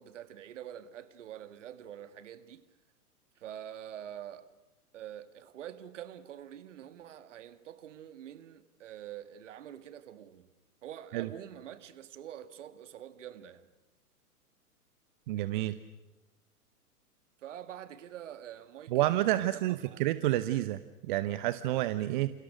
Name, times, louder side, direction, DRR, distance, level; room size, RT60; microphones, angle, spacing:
voice 1, 0.0-2.6 3.4-4.5 4.9-10.5 10.8-13.7 17.4-19.4 19.7-20.0, right 10 dB, 50° right, 1.9 m, -46 dB
voice 2, 15.3-15.7 18.9-22.3, right 15 dB, 35° right, 0.8 m, -29 dB
29.5 x 28.5 x 6.3 m
figure-of-eight pair, 110°, 46 cm